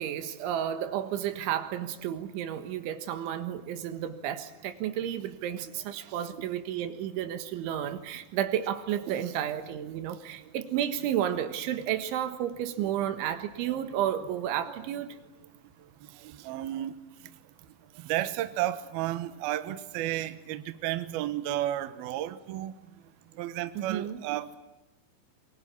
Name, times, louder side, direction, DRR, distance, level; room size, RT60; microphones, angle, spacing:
voice 1, 0.0-15.1 23.8-24.2, right 10 dB, 85° right, 9 dB, 3.9 m, -32 dB
voice 2, 6.0-6.4 9.1-9.3 12.8-12.9 14.0-14.1 14.6-14.9 16.2-16.9 18.0-22.7 23.4-24.6, right 13 dB, 70° right, 11 dB, 2.6 m, -33 dB
24.0 x 23.5 x 9.6 m, 0.98 s
omnidirectional pair, 5.3 m